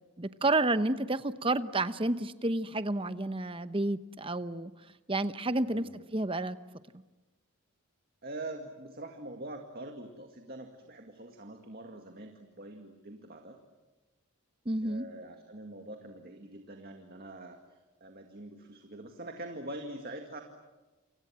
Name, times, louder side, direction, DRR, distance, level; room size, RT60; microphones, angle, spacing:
voice 1, 0.2-4.7 5.1-6.6 14.7-15.1, right 2 dB, 25° right, 12 dB, 0.8 m, -30 dB
voice 2, 5.6-6.0 8.2-13.6 14.8-17.6 18.0-20.4, right 1 dB, 45° right, 4 dB, 2.0 m, -44 dB
29.0 x 26.0 x 7.6 m, 1.2 s
head